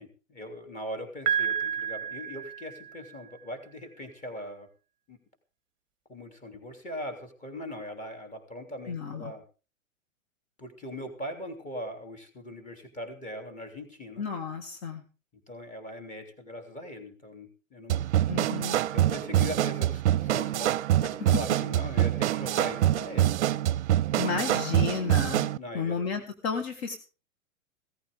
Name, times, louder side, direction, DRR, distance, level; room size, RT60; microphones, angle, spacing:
voice 1, 0.0-4.7 5.1-5.2 6.1-9.4 10.6-14.2 15.5-18.0 18.9-23.7 24.3-24.5 25.6-26.0, left 1 dB, 20° left, 5 dB, 3.3 m, -40 dB
Piano, 1.3-3.2, right 8 dB, 25° right, 0.9 m, -30 dB
voice 2, 8.9-9.3 14.2-15.0 18.3-18.8 24.2-25.5 25.7-27.0, left 5 dB, 50° left, 5 dB, 2.0 m, -32 dB
sound 1, 17.9-25.6, right 13 dB, 60° right, 0.6 m, -25 dB
17.0 x 14.5 x 3.7 m, 0.35 s
figure-of-eight pair, 110°, 41 cm